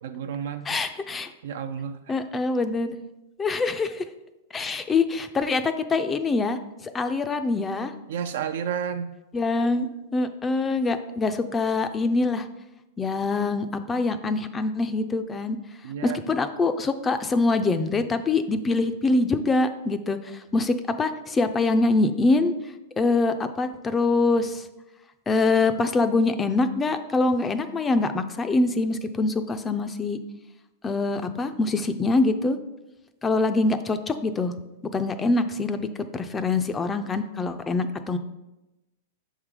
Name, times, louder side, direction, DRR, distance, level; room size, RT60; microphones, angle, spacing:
voice 1, 0.0-0.8 1.4-2.1 8.1-9.1 15.8-16.2, right 8 dB, 70° right, 8 dB, 0.4 m, -31 dB
voice 2, 0.7-1.3 2.1-3.0 3.4-4.0 4.5-6.6 6.9-7.9 9.3-12.5 13.0-15.6 16.0-22.5 23.0-24.7 25.3-30.2 30.8-32.6 33.2-34.5 34.9-35.9 36.1-38.2, left 3 dB, 15° left, 9 dB, 0.4 m, -24 dB
6.7 x 3.7 x 4.8 m, 0.98 s
hypercardioid pair, 135°, 0 cm